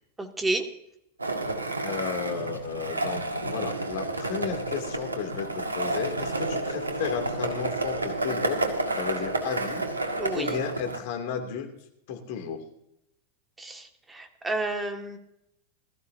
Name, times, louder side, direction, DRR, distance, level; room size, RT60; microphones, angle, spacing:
voice 1, 0.2-0.7 10.2-10.6 13.6-15.2, right 2 dB, 10° right, 5 dB, 1.9 m, -31 dB
Skateboard, 1.2-11.0, right 2 dB, 80° right, 1.7 m, -30 dB
voice 2, 1.8-8.6 9.0-9.8 10.1-11.7 12.1-12.6, left 7 dB, 50° left, 3 dB, 2.7 m, -33 dB
20.5 x 14.0 x 2.8 m, 0.80 s
figure-of-eight pair, 90°, 0 cm